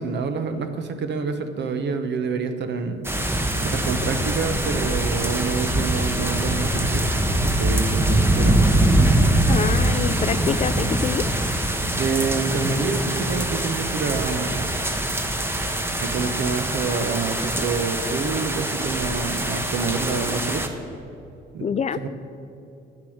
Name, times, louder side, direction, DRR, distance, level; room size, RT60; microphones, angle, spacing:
voice 1, 0.0-3.1 3.6-7.1 7.4-8.6 11.9-14.7 16.0-20.6 21.5-21.7 22.0-22.1, right 4 dB, 60° right, 8 dB, 1.0 m, -27 dB
sound 1, 3.0-20.7, right 1 dB, 10° right, 0.9 m, -23 dB
voice 2, 9.5-11.2 21.6-22.0, left 6 dB, 35° left, 14 dB, 0.4 m, -26 dB
9.8 x 7.4 x 6.4 m, 2.7 s
cardioid pair, 90°, 20 cm